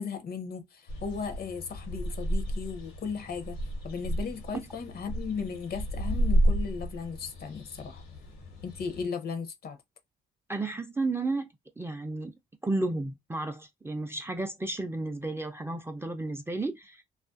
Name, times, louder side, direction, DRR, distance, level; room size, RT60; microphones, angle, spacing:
voice 1, 0.0-3.6 3.8-8.0 8.6-9.8, left 5 dB, 50° left, 0.6 m, -36 dB
sound 1, 0.9-9.0, right 1 dB, 85° left, 1.1 m, -31 dB
voice 2, 10.5-11.5 11.8-12.3 12.6-17.0, right 2 dB, 10° right, 0.4 m, -32 dB
2.4 x 2.2 x 2.4 m
cardioid pair, 90°, 20 cm